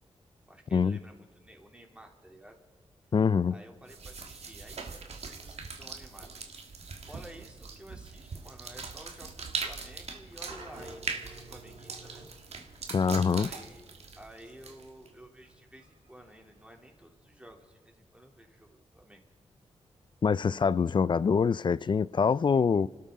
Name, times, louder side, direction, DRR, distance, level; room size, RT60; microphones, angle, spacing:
voice 1, 0.5-2.6 3.5-6.4 7.0-12.3 13.3-13.9 14.2-19.2, right 1 dB, 10° right, 3.0 m, -52 dB
voice 2, 3.1-3.6 12.9-13.5 20.2-22.9, left 6 dB, 45° left, 0.4 m, -25 dB
sound 1, 3.9-15.1, right 4 dB, 65° right, 1.6 m, -41 dB
sound 2, 10.4-17.5, right 2 dB, 85° right, 4.3 m, -52 dB
29.0 x 13.0 x 3.7 m
cardioid pair, 70°, 12 cm